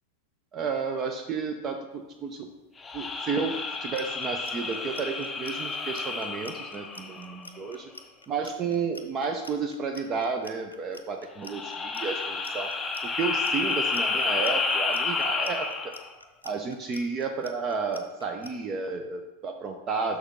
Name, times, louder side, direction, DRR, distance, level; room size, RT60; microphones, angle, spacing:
voice 1, 0.5-2.5 2.9-7.9 8.3-12.7 13.1-15.9 16.4-20.2, right 5 dB, 30° right, 5 dB, 0.6 m, -32 dB
sound 1, 2.8-7.6 11.4-16.1, left 4 dB, 15° left, 0.5 m, -30 dB
Clock, 3.7-18.5, left 2 dB, 85° left, 0.5 m, -47 dB
6.4 x 6.1 x 3.6 m, 1.0 s
figure-of-eight pair, 90°, 0 cm